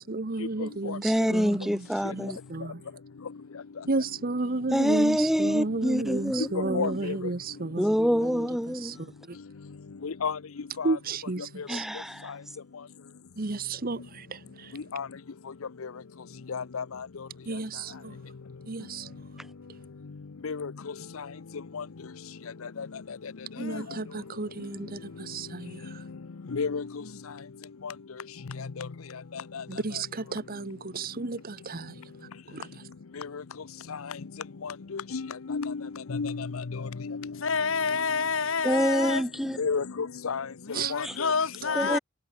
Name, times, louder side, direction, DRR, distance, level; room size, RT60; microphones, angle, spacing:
voice 1, 0.0-2.8 3.9-8.5 8.8-8.9 10.8-11.9 13.4-14.7 17.5-18.1 18.7-19.1 23.6-25.8 29.7-31.9 32.5-32.7 40.7-40.9, right 3 dB, 45° right, 1.1 m, -33 dB
voice 2, 1.0-2.4 4.7-7.0 7.8-9.0 11.7-12.3 38.6-39.6 41.0-41.2 41.8-42.0, equal, ahead, 1.9 m, -26 dB
voice 3, 6.4-7.2 10.0-10.4 10.8-11.0 14.7-15.1 16.5-16.8 20.4-20.7 21.7-21.8 22.8-22.9 26.5-26.8 27.8-27.9 28.8-28.9 29.5-29.6 33.2-33.3 34.6-35.8 36.1-37.3 39.6-40.5 40.9-41.3 41.7-42.0, left 5 dB, 85° left, 0.7 m, -32 dB
voice 4, 23.5-23.9 27.0-27.2 37.3-39.2 40.6-42.0, left 5 dB, 70° left, 1.5 m, -29 dB
head